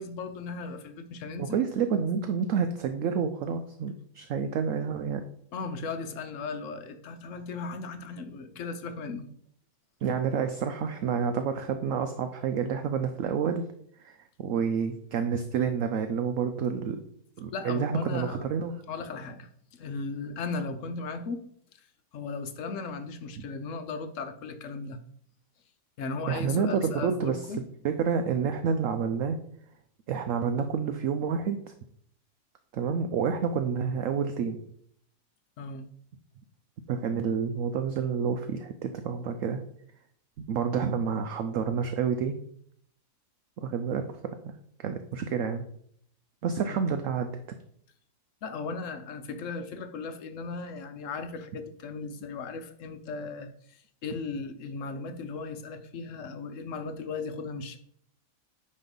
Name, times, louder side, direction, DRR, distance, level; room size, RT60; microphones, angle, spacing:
voice 1, 0.0-1.6 5.5-9.3 17.5-18.4 18.9-21.5 22.1-25.0 26.0-27.6 35.6-35.9 46.6-46.9 48.4-53.5 54.0-57.8, left 4 dB, 60° left, 8 dB, 1.0 m, -36 dB
voice 2, 1.4-5.2 10.0-13.7 14.0-17.0 17.4-18.8 23.4-23.5 26.3-27.6 27.8-29.4 30.1-31.7 32.7-34.6 36.9-39.6 40.5-42.4 43.6-44.5 44.8-45.7 46.4-47.4, right 6 dB, 65° right, 7 dB, 0.8 m, -29 dB
9.5 x 3.2 x 5.3 m, 0.66 s
omnidirectional pair, 1.7 m